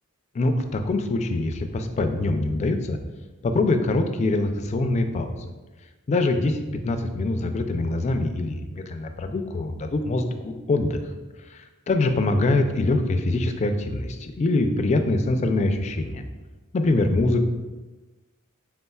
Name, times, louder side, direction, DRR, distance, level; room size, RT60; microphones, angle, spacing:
voice 1, 0.3-3.0 3.4-5.5 6.1-6.6 6.8-11.0 11.5-16.2 16.7-17.4, left 2 dB, 30° left, 6 dB, 0.3 m, -24 dB
5.3 x 3.7 x 2.3 m, 1.2 s
head